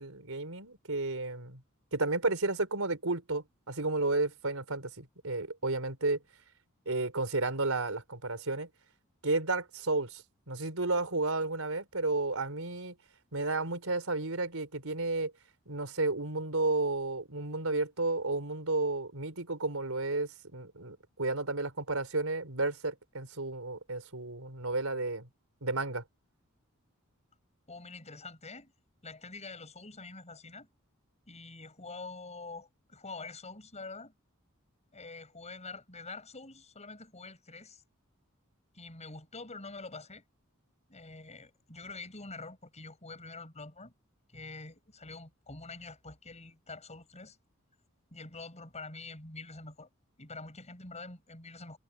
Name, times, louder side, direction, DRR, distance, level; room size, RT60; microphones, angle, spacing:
voice 1, 0.0-1.6 1.9-6.2 6.9-8.7 9.2-12.9 13.3-15.3 15.7-25.3 25.6-26.0, right 2 dB, 75° right, 4.4 m, -32 dB
voice 2, 27.7-28.7 29.0-30.7 31.3-34.1 34.9-37.8 38.7-40.2 40.9-43.9 44.3-47.4 48.1-49.9 50.2-51.8, left 3 dB, 30° left, 7.2 m, -46 dB
head